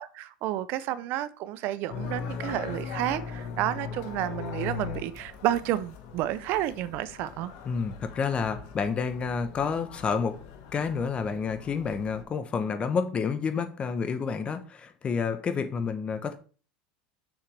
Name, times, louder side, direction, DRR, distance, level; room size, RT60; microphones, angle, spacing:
voice 1, 0.0-7.5, right 13 dB, 55° right, 0.5 m, -31 dB
sound 1, 1.9-12.2, left 7 dB, 65° left, 1.4 m, -40 dB
voice 2, 7.7-10.4 10.7-16.4, left 5 dB, 25° left, 0.9 m, -29 dB
6.9 x 5.8 x 3.3 m
supercardioid pair, 120°, 4 cm